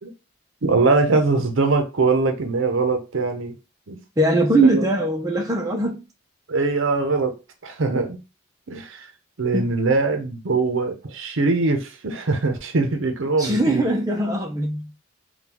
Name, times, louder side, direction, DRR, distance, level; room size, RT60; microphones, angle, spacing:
voice 1, 0.6-3.5 3.9-4.0 4.7-4.8 6.5-7.3 7.6-8.2 8.7-9.1 9.4-13.9, right 3 dB, 65° right, 0.6 m, -22 dB
voice 2, 4.2-6.0 9.5-9.7 13.4-14.9, right 2 dB, 15° right, 0.5 m, -21 dB
3.8 x 2.3 x 2.8 m
head